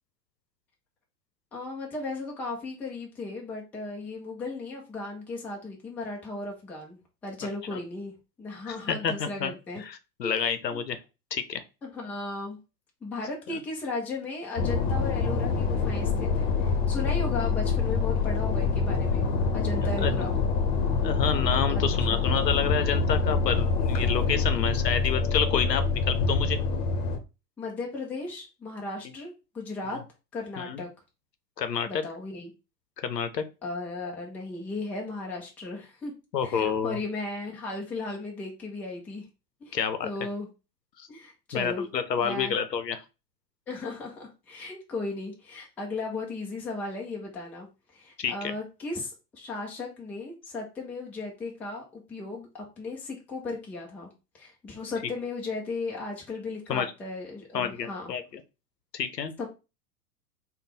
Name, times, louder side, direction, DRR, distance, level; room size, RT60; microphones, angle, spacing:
voice 1, 1.5-9.8 10.2-10.8 11.8-12.6 13.0-19.3 19.5-20.3 21.7-22.2 27.6-30.0 30.3-30.9 31.9-32.5 33.6-36.1 36.4-39.3 39.6-40.5 41.1-41.9 42.2-42.6 43.7-58.1 59.4-59.5, left 3 dB, 5° left, -1 dB, 0.3 m, -36 dB
voice 2, 8.7-9.5 9.8-11.0 11.3-11.6 19.8-20.2 21.0-26.6 29.9-30.0 30.6-30.8 31.6-32.0 33.0-33.4 36.3-37.0 39.7-40.1 41.0-41.1 41.5-43.0 48.2-48.5 56.7-56.9 57.5-58.4 58.9-59.3, left 7 dB, 90° left, 10 dB, 0.7 m, -29 dB
sound 1, 14.6-27.2, left 4 dB, 40° left, 0.9 m, -26 dB
3.3 x 2.2 x 4.1 m, 0.28 s
hypercardioid pair, 100°, 48 cm